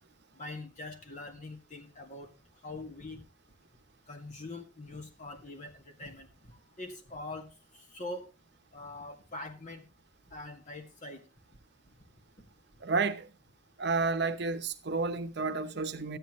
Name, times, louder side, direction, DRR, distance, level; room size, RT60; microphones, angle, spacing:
voice 1, 0.3-2.3 2.6-3.2 4.1-7.5 7.7-8.2 8.7-9.9 10.3-11.2, left 2 dB, 40° left, 1.9 m, -43 dB
voice 2, 12.8-13.3 13.8-16.2, right 4 dB, 65° right, 0.9 m, -31 dB
13.0 x 9.2 x 3.1 m
head